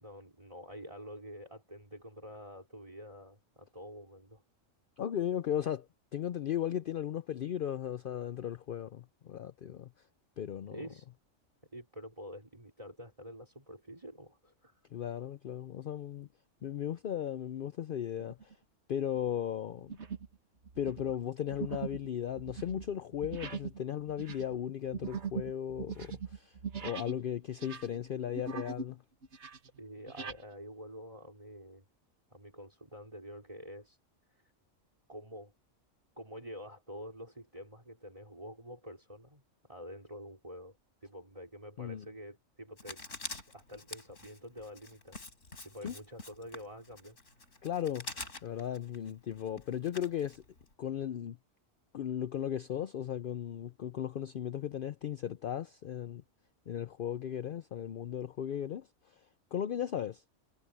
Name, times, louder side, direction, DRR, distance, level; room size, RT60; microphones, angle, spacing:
voice 1, 0.0-4.4 10.7-11.1 11.7-14.7 29.8-31.8 32.3-34.0 35.1-35.5 36.2-39.4 39.7-40.8 41.0-43.0 43.5-45.2 45.6-47.2, equal, 25° right, 4.4 m, -48 dB
voice 2, 5.0-5.9 6.1-9.9 10.4-10.8 14.9-16.3 16.6-18.5 18.9-19.9 20.8-29.0 41.8-42.1 45.8-45.9 47.6-48.1 48.4-50.4 50.8-51.4 51.9-56.2 56.7-59.3 59.5-60.2, left 10 dB, 55° left, 0.6 m, -36 dB
sound 1, 18.2-18.5 19.1-19.3 19.9-20.4 20.6-27.2 27.5-28.9 29.2-30.4, right 6 dB, 65° right, 1.7 m, -41 dB
Writing, 42.8-50.7, left 2 dB, 85° left, 4.3 m, -46 dB
omnidirectional pair, 1.3 m